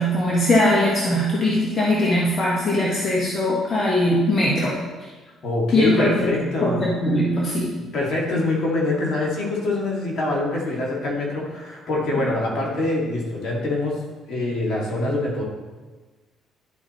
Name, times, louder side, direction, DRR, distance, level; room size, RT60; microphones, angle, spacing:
voice 1, 0.0-5.1 5.7-6.3 6.6-7.8 12.1-12.2, left 1 dB, 40° left, -4 dB, 1.4 m, -21 dB
voice 2, 5.4-6.8 7.9-14.0 14.3-15.4, left 2 dB, 60° left, -3 dB, 2.2 m, -24 dB
11.0 x 4.2 x 3.0 m, 1.3 s
supercardioid pair, 65°, 0 cm